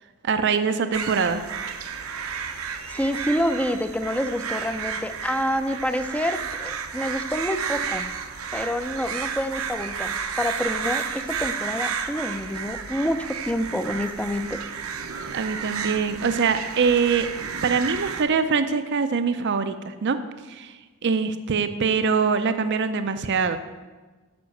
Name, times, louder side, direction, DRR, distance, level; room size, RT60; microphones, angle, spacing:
voice 1, 0.2-1.4 15.3-17.3 17.6-20.2 20.5-23.6, right 5 dB, 55° right, 10 dB, 0.5 m, -23 dB
sound 1, 0.9-18.2, right 6 dB, 80° right, 0.9 m, -32 dB
voice 2, 2.7-8.1 8.5-14.6, equal, 5° left, 10 dB, 0.5 m, -27 dB
9.5 x 6.2 x 7.7 m, 1.3 s
head